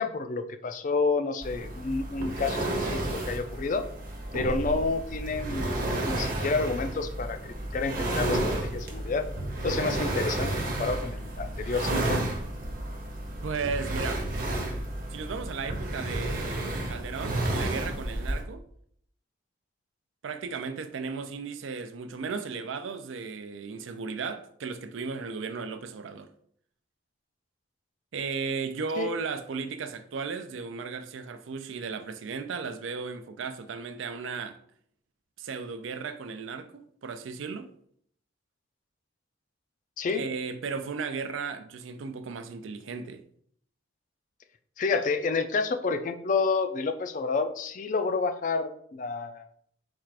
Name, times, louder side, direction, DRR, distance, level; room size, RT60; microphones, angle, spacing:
voice 1, 0.0-3.8 4.3-5.7 6.0-9.3 9.6-12.3 29.0-29.1 40.0-40.2 44.8-49.5, left 4 dB, 40° left, 0.3 m, -29 dB
sound 1, 1.4-18.4, right 1 dB, 45° right, 0.9 m, -32 dB
voice 2, 13.4-14.3 15.1-18.6 20.2-26.3 28.1-34.6 35.4-37.7 40.1-43.2, right 5 dB, 85° right, 0.4 m, -35 dB
4.4 x 2.4 x 4.6 m
head